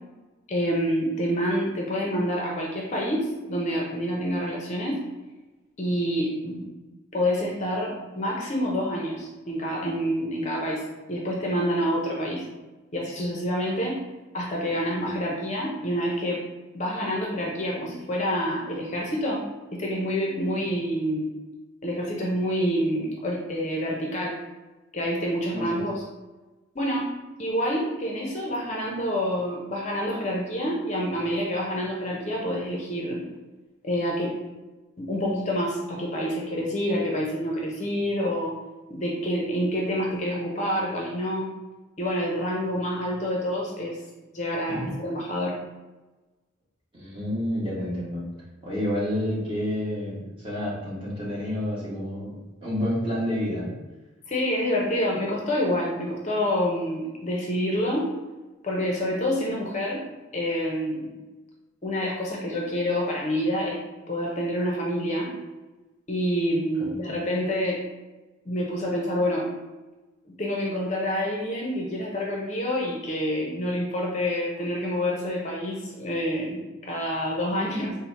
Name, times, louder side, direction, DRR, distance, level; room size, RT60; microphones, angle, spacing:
voice 1, 0.5-5.0 5.8-6.7 7.1-12.5 12.9-14.0 14.3-16.4 16.7-19.4 19.7-21.3 21.8-24.4 24.9-26.0 26.7-27.1 27.4-33.2 33.8-34.4 35.0-38.6 38.9-41.5 42.0-44.0 44.3-45.6 54.3-58.1 58.6-60.0 60.3-61.1 61.8-63.8 64.1-65.3 66.1-67.8 68.4-69.5 70.3-77.9, equal, 35° left, -2 dB, 0.5 m, -27 dB
voice 2, 46.9-48.2 48.6-53.7 66.8-66.9, left 1 dB, 25° right, -8 dB, 1.3 m, -29 dB
4.0 x 2.1 x 4.3 m, 1.1 s
head